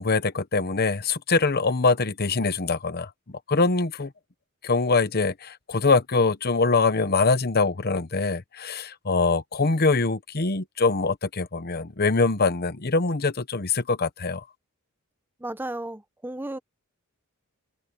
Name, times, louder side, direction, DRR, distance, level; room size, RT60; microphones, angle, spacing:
voice 1, 0.0-4.1 4.6-14.4, left 3 dB, 45° left, 1.0 m, -23 dB
voice 2, 15.4-16.6, right 1 dB, 10° right, 0.7 m, -34 dB
head